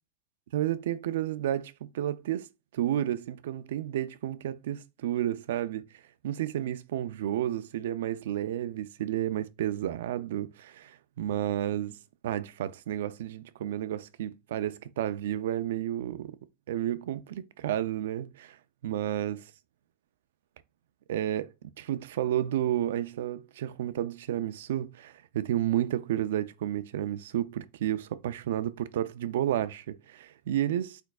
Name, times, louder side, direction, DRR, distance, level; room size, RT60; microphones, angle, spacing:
voice 1, 0.5-2.5 2.7-5.8 6.2-12.0 12.2-16.3 16.7-18.6 18.8-19.4 21.1-21.5 21.8-31.0, right 12 dB, 80° right, 0.4 m, -31 dB
4.5 x 4.5 x 2.3 m
supercardioid pair, 145°, 0 cm